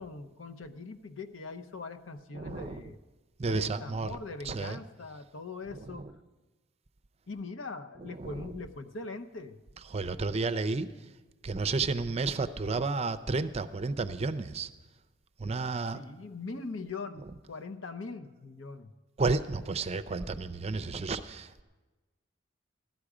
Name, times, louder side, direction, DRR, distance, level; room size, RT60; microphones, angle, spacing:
voice 1, 0.0-3.0 3.4-6.1 7.3-9.6 15.9-18.9, left 3 dB, 70° left, 9 dB, 0.8 m, -41 dB
voice 2, 2.3-2.9 3.4-4.2 4.4-4.8 5.7-6.1 8.1-8.3 9.9-10.9 11.4-14.7 15.4-16.0 19.2-21.6, right 3 dB, 30° right, 12 dB, 0.5 m, -32 dB
15.5 x 12.5 x 4.9 m, 1.2 s
head